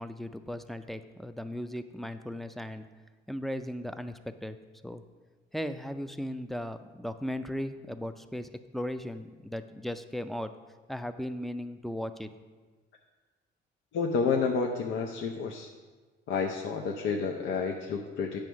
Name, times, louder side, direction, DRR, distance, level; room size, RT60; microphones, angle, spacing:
voice 1, 0.0-2.9 3.3-4.6 4.8-5.0 5.5-10.5 10.9-12.3, equal, ahead, 10 dB, 0.4 m, -37 dB
voice 2, 13.9-15.7 16.3-18.4, left 5 dB, 75° left, 1 dB, 0.6 m, -30 dB
8.8 x 3.4 x 6.2 m, 1.3 s
cardioid pair, 90°, 20 cm